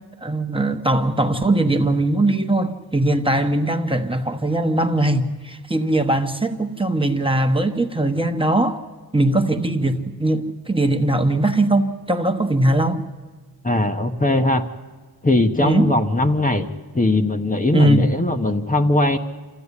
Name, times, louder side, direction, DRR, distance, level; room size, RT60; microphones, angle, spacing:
voice 1, 0.2-8.8 9.1-13.0 15.6-15.9 17.7-18.1, right 1 dB, 15° right, 1.2 m, -20 dB
voice 2, 13.6-14.7 15.2-16.7 16.9-19.2, left 2 dB, 20° left, 1.1 m, -19 dB
27.0 x 14.0 x 9.8 m
wide cardioid pair, 100°, 37 cm